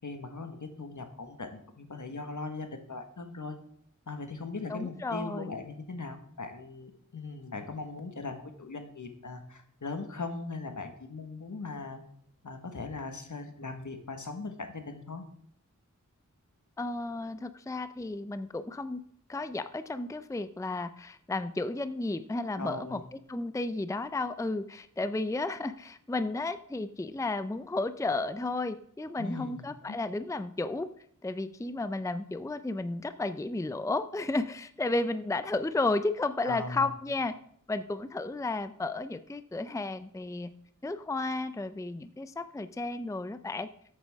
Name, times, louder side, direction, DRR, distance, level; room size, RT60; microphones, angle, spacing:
voice 1, 0.0-3.6 4.1-12.0 12.4-15.2 22.6-23.0 29.2-30.0 36.4-36.8, left 3 dB, 65° left, 6 dB, 1.5 m, -39 dB
voice 2, 4.7-5.5 16.8-19.0 19.3-23.0 23.3-30.9 31.2-37.4 37.7-40.5 40.8-43.7, left 2 dB, 10° left, 12 dB, 0.5 m, -33 dB
13.5 x 8.4 x 3.6 m, 0.67 s
wide cardioid pair, 40°, 32 cm